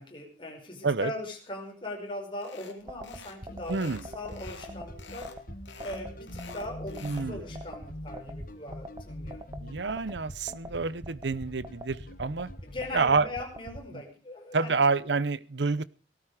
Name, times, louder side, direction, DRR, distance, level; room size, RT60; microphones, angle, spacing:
voice 1, 0.0-5.3 5.8-9.4 12.6-14.8, left 1 dB, 25° left, 1 dB, 5.1 m, -40 dB
sound 1, 2.4-2.8 3.0-3.4 3.6-4.7 5.0-5.4 5.7-7.3, left 5 dB, 75° left, 2.8 m, -48 dB
sound 2, 2.9-13.8, equal, 20° right, 1.4 m, -42 dB
sound 3, 3.5-13.1, left 1 dB, 50° left, 1.4 m, -45 dB
voice 2, 3.7-4.1 7.0-7.4 9.6-12.5 12.9-13.3 13.9-14.0 14.5-15.8, right 4 dB, 65° right, 18 dB, 0.7 m, -28 dB
18.0 x 13.5 x 4.9 m, 0.35 s
head